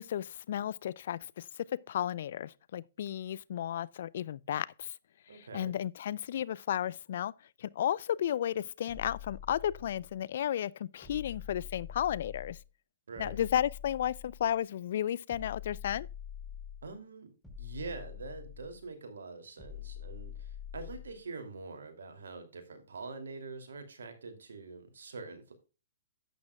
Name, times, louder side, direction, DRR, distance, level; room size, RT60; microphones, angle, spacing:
voice 1, 0.0-1.5 1.9-4.9 5.3-7.3 7.6-12.6 13.2-16.1, left 10 dB, 60° left, 0.4 m, -33 dB
voice 2, 5.3-5.7 13.1-13.4 16.8-25.5, right 3 dB, 75° right, 2.7 m, -45 dB
sound 1, 8.9-10.2 11.0-12.7 13.2-14.6 15.3-16.9 17.4-18.8 19.6-21.2, left 9 dB, ahead, 4.0 m, -45 dB
11.5 x 8.9 x 2.3 m
hypercardioid pair, 125°, 0 cm